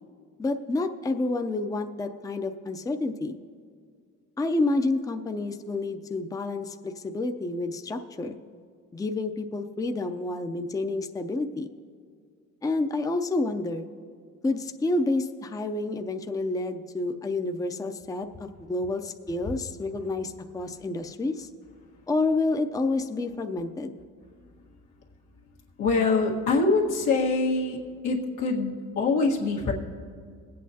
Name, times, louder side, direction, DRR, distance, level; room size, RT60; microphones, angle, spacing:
voice 1, 0.4-3.4 4.4-8.4 8.9-11.7 12.6-13.9 14.4-21.5 22.1-23.9, left 2 dB, 10° left, 5 dB, 0.5 m, -29 dB
voice 2, 25.8-27.8 28.0-29.7, left 3 dB, 90° left, -2 dB, 1.6 m, -24 dB
21.5 x 8.5 x 2.8 m, 2.1 s
cardioid pair, 90°, 30 cm